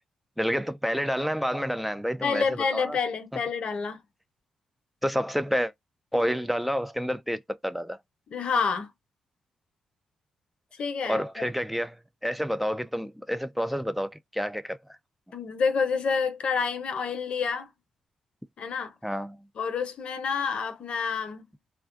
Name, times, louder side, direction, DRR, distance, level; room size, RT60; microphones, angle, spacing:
voice 1, 0.4-3.0 5.0-5.7 6.1-8.0 11.1-12.0 12.2-14.8 19.0-19.4, equal, 5° right, 0.3 m, -29 dB
voice 2, 2.2-4.0 8.3-8.9 10.8-11.5 15.3-17.7 18.6-18.9 19.6-21.4, left 5 dB, 65° left, 0.6 m, -28 dB
2.4 x 2.2 x 2.3 m
supercardioid pair, 45°, 2 cm